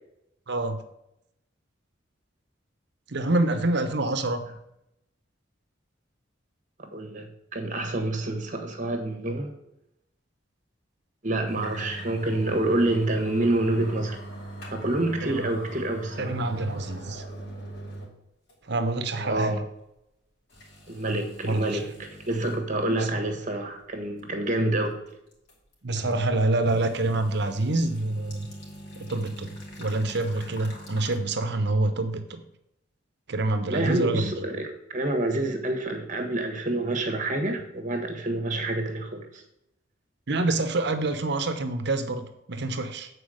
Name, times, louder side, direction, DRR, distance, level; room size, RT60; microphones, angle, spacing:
voice 1, 0.5-0.8 3.1-4.4 15.2-15.5 16.2-17.2 18.7-19.6 21.4-21.8 22.9-23.1 25.8-28.5 29.0-32.4 33.3-34.3 40.3-42.2 42.5-43.1, right 2 dB, 65° right, 9 dB, 1.0 m, -26 dB
voice 2, 6.8-9.5 11.2-14.2 14.7-16.4 19.2-19.6 20.9-25.0 33.7-34.7 34.9-39.4, right 1 dB, 45° right, 5 dB, 1.5 m, -27 dB
sound 1, 11.5-18.2 18.5-18.6 19.3-19.4 20.5-22.6 23.1-23.2 25.3-26.4 26.7-31.2, right 1 dB, 60° left, 2.8 m, -41 dB
8.4 x 4.7 x 6.5 m, 0.83 s
head